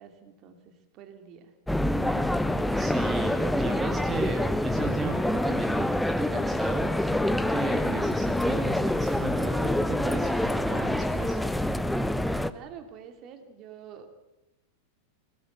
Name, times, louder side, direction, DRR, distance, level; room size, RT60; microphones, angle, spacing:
voice 1, 0.0-1.5 12.5-14.2, right 8 dB, 35° right, 7 dB, 2.7 m, -47 dB
sound 1, 1.7-12.5, left 1 dB, 5° left, 0.9 m, -26 dB
voice 2, 2.7-11.4, right 3 dB, 15° right, 4 dB, 2.2 m, -34 dB
21.0 x 17.0 x 8.2 m, 1.0 s
figure-of-eight pair, 90°, 0 cm